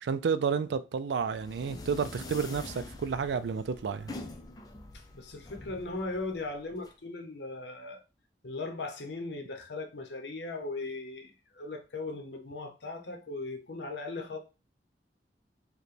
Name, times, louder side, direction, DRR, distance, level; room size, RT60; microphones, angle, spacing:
voice 1, 0.0-4.1, right 6 dB, 80° right, 0.3 m, -31 dB
sound 1, 1.1-6.9, left 2 dB, 20° left, 0.4 m, -45 dB
voice 2, 4.9-8.0 8.4-14.4, left 3 dB, 80° left, 0.8 m, -38 dB
4.8 x 2.2 x 3.2 m
head